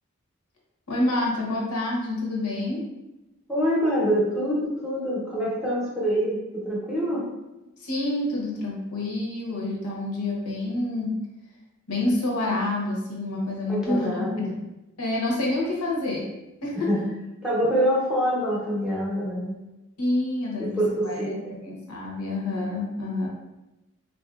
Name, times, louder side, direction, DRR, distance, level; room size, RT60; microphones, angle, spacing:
voice 1, 0.9-2.9 7.8-11.2 11.9-14.5 15.0-16.3 16.6-16.9 20.0-21.4 21.6-23.3, left 2 dB, 85° left, -3 dB, 0.9 m, -28 dB
voice 2, 3.5-7.2 13.7-14.5 16.8-17.0 17.4-19.6 20.6-21.6, equal, 5° right, -6 dB, 0.7 m, -25 dB
4.1 x 2.6 x 2.4 m, 0.99 s
head